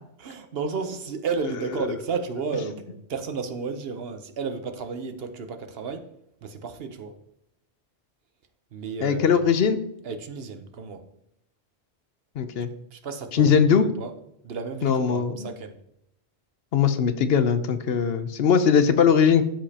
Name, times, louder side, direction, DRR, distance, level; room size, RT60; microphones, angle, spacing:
voice 1, 0.2-6.1 6.4-7.1 8.7-9.4 10.0-11.0 12.9-14.1 14.4-15.8, right 5 dB, 65° right, 8 dB, 1.0 m, -32 dB
voice 2, 9.0-9.8 12.4-12.7 13.3-13.9 14.8-15.5 16.7-19.4, left 7 dB, 70° left, 10 dB, 0.9 m, -20 dB
12.5 x 5.1 x 2.8 m, 0.79 s
omnidirectional pair, 1.1 m